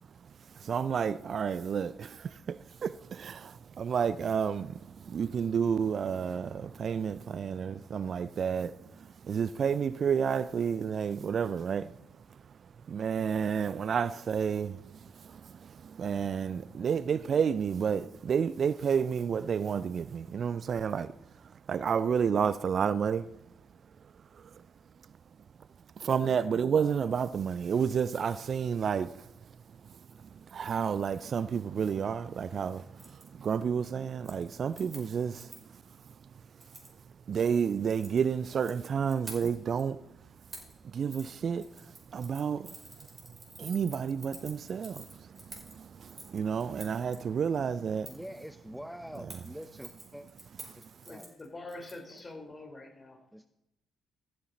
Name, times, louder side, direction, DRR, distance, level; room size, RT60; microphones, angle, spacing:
voice 1, 0.1-23.3 24.3-24.7 26.0-40.0 40.8-48.2 50.7-50.8, right 7 dB, 50° right, 0.4 m, -31 dB
Keys jangling, 33.0-33.3 33.6-33.9 34.2-35.8 36.6-36.9 37.8-38.7 39.1-39.8 40.5-40.8 41.1-41.3 41.6-47.2 48.0-48.3 49.1-52.2 52.5-52.6, right 2 dB, 20° right, 5.3 m, -49 dB
voice 2, 48.1-50.3 50.8-51.4 52.1-52.2 53.3-53.5, equal, ahead, 0.6 m, -45 dB
voice 3, 51.1-53.2, left 2 dB, 25° left, 4.0 m, -45 dB
15.0 x 11.5 x 4.2 m
hypercardioid pair, 45°, 0 cm